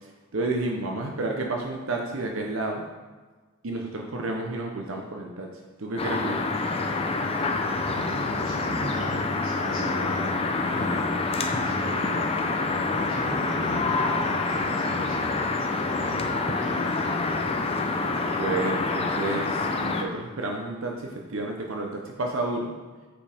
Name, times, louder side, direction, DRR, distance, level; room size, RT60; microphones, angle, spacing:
voice 1, 0.0-2.8 3.6-5.5 5.8-6.5 18.4-22.7, right 2 dB, 65° right, 1 dB, 0.7 m, -30 dB
sound 1, 6.0-20.0, left 3 dB, 25° left, 0.5 m, -27 dB
voice 2, 7.3-12.3 12.9-15.4 15.9-17.7, equal, 30° right, -13 dB, 2.1 m, -37 dB
8.4 x 5.1 x 3.5 m, 1.3 s
head